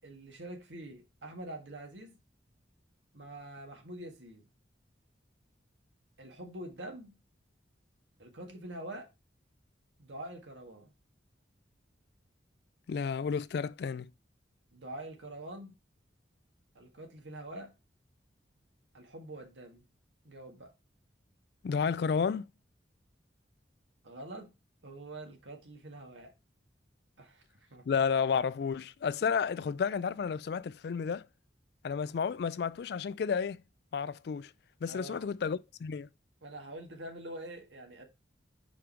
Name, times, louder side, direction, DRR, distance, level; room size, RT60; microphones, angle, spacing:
voice 1, 0.0-2.2 3.1-4.5 6.2-7.2 8.2-9.1 10.0-10.9 14.7-15.7 16.8-17.7 18.9-19.8 20.2-20.7 24.0-24.5 24.8-26.3 27.2-28.1 34.9-35.3 36.4-38.0, right 1 dB, 80° right, 1.7 m, -45 dB
voice 2, 12.9-14.1 21.6-22.5 27.9-31.3 31.8-33.6 33.9-34.5 34.8-36.1, left 6 dB, 60° left, 0.3 m, -31 dB
5.1 x 5.1 x 4.4 m
head